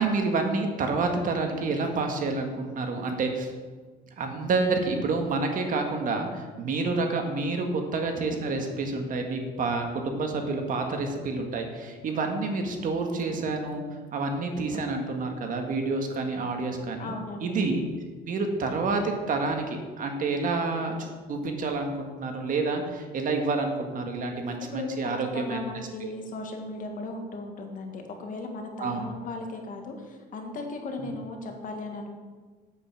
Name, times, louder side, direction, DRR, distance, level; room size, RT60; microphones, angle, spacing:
voice 1, 0.0-3.5 4.2-13.8 14.1-17.1 17.4-17.8 18.3-25.6 28.8-29.0 31.0-31.1, right 3 dB, 50° right, 4 dB, 1.7 m, -28 dB
voice 2, 17.0-17.5 24.7-32.1, left 2 dB, 55° left, 3 dB, 1.8 m, -37 dB
8.3 x 8.3 x 5.8 m, 1.4 s
cardioid pair, 110°, 17 cm